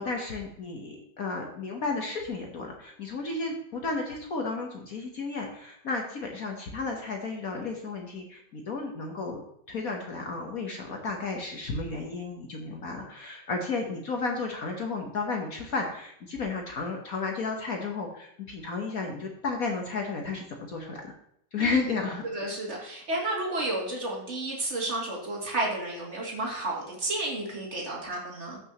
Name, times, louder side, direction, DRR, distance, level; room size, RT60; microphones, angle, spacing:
voice 1, 0.0-9.4 9.7-21.1 21.5-22.2, left 3 dB, 50° left, 2 dB, 1.4 m, -33 dB
voice 2, 22.3-28.6, right 2 dB, 35° right, -3 dB, 2.9 m, -32 dB
15.0 x 6.1 x 3.0 m, 0.72 s
omnidirectional pair, 2.2 m